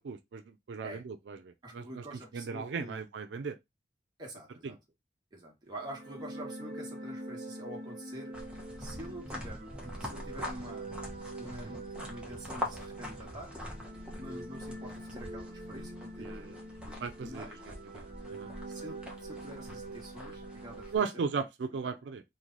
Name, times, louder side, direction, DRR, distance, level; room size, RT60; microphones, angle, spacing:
voice 1, 0.0-1.4 1.7-2.0 2.3-3.5 11.7-11.8 16.2-16.5 17.0-17.5 18.0-18.5 20.9-22.2, right 5 dB, 90° right, 0.4 m, -36 dB
voice 2, 1.6-3.1 4.2-4.8 5.3-8.4 8.8-10.9 11.4-13.5 14.2-17.6 18.7-21.1 21.8-21.9, right 1 dB, 25° right, 1.1 m, -47 dB
sound 1, 5.7-21.4, right 2 dB, 60° right, 0.9 m, -45 dB
sound 2, 8.3-21.0, left 1 dB, 5° right, 0.7 m, -44 dB
3.1 x 2.1 x 3.8 m
head